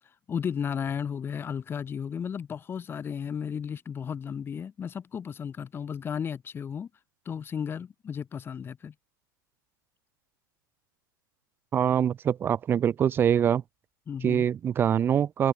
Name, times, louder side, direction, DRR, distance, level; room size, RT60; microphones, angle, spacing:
voice 1, 0.3-6.9 7.3-8.9 14.1-14.5, left 7 dB, 20° left, 3.5 m, -34 dB
voice 2, 11.7-13.6 14.2-15.5, right 9 dB, 20° right, 0.6 m, -24 dB
figure-of-eight pair, 100°, 12 cm